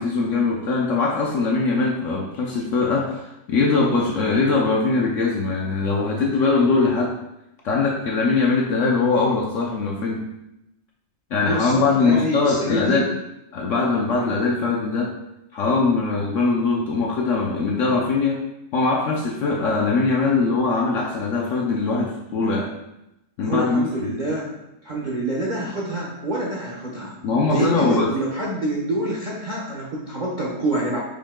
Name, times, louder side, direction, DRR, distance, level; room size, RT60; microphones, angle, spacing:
voice 1, 0.0-7.1 7.6-10.2 11.3-13.1 13.5-15.1 15.5-18.4 18.7-22.7 23.4-24.2 27.2-28.1, left 3 dB, 65° left, -1 dB, 0.8 m, -21 dB
voice 2, 11.5-13.1 23.4-24.5 24.8-27.2 27.5-31.0, right 1 dB, 45° right, -5 dB, 0.6 m, -26 dB
5.2 x 2.8 x 3.6 m, 0.89 s
omnidirectional pair, 1.7 m